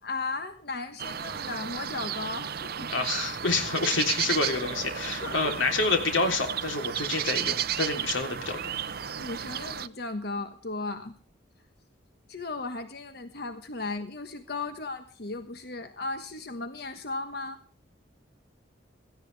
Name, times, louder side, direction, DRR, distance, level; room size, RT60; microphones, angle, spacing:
voice 1, 0.0-2.9 5.2-5.5 9.2-11.2 12.3-17.6, left 3 dB, 55° left, 9 dB, 1.3 m, -36 dB
sound 1, 1.0-9.9, right 9 dB, 50° right, 0.6 m, -33 dB
voice 2, 2.9-8.6, left 3 dB, 80° left, 4 dB, 3.5 m, -28 dB
17.5 x 15.0 x 3.4 m, 0.40 s
head